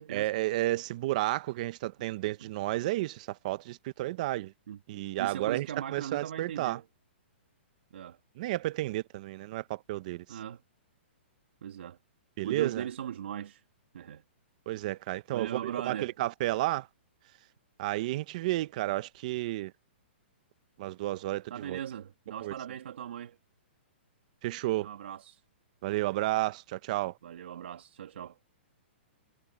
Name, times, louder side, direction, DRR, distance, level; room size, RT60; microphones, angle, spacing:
voice 1, 0.1-4.5 4.9-6.8 8.4-10.4 12.4-12.8 14.7-16.9 17.8-19.7 20.8-21.8 22.4-22.5 24.4-24.9 25.8-27.2, right 17 dB, 40° right, 1.0 m, -32 dB
voice 2, 5.2-6.8 7.9-8.2 10.3-10.6 11.6-12.0 12.4-13.6 13.9-14.2 15.3-16.1 21.5-23.4 24.8-25.4 27.2-28.4, right 9 dB, 70° right, 2.0 m, -39 dB
hypercardioid pair, 165°, 6 cm